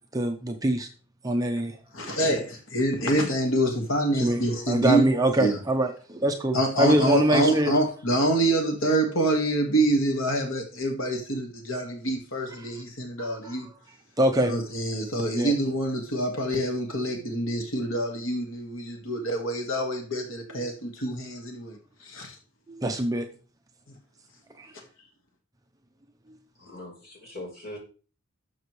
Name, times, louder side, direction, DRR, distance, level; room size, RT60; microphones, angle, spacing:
voice 1, 0.1-0.9 1.2-1.8 4.2-4.4 4.7-7.7 12.6-12.7 13.2-13.6 14.2-14.5 15.4-15.5 20.5-20.7 22.7-23.3 24.6-24.7, right 1 dB, 15° right, 0.7 m, -24 dB
voice 2, 1.9-5.0 5.4-5.6 6.5-13.7 14.5-22.4, right 1 dB, 65° left, 1.7 m, -26 dB
voice 3, 26.6-27.8, left 1 dB, 45° left, 3.8 m, -41 dB
12.0 x 7.2 x 3.2 m
head